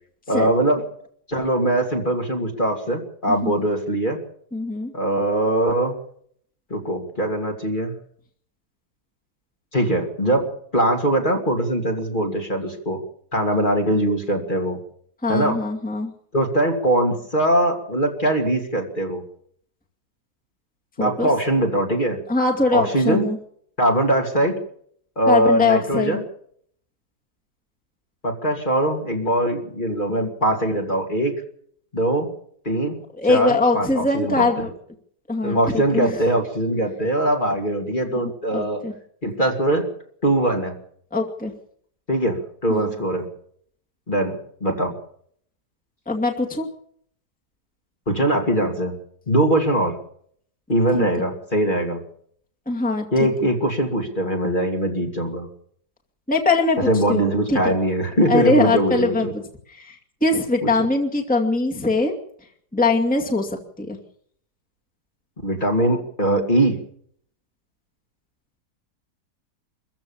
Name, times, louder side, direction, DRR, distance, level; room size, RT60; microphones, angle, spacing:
voice 1, 0.3-0.8 1.3-4.2 4.9-5.9 6.7-7.9 9.7-13.0 13.3-14.8 15.3-15.6 16.3-19.2 21.0-22.2 22.7-23.2 23.8-24.6 25.2-26.2 28.2-31.4 31.9-32.3 32.6-33.0 33.3-34.7 35.4-38.8 39.2-39.9 40.2-40.7 42.1-43.3 44.1-44.9 48.1-49.0 49.3-50.0 50.7-52.0 53.1-55.5 56.8-59.3 60.6-60.7 65.4-66.8, right 1 dB, 30° left, 2 dB, 2.7 m, -21 dB
voice 2, 4.5-4.9 15.2-16.1 21.0-21.3 22.3-23.4 25.3-26.2 33.2-34.7 35.3-36.2 38.2-38.9 41.1-41.5 42.7-42.9 46.1-46.7 50.9-51.1 52.7-53.1 56.3-57.7 58.3-59.4 59.8-62.1 62.7-64.0, left 3 dB, 5° left, 1 dB, 2.3 m, -22 dB
24.5 x 15.0 x 7.2 m, 0.65 s
omnidirectional pair, 1.8 m